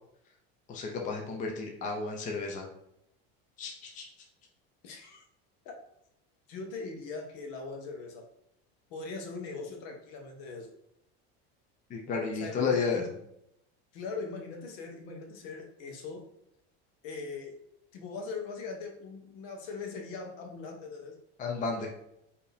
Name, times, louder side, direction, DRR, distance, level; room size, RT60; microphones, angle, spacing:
voice 1, 0.7-2.7 3.6-4.1 11.9-13.0 21.4-21.9, left 4 dB, 25° left, 1 dB, 0.6 m, -32 dB
voice 2, 4.8-5.2 5.6-5.7 6.5-8.3 8.9-10.7 12.3-13.1 13.9-16.2 17.0-17.6 17.9-21.1, left 4 dB, 70° left, 3 dB, 1.1 m, -40 dB
4.4 x 2.8 x 3.4 m, 0.77 s
supercardioid pair, 140°, 30 cm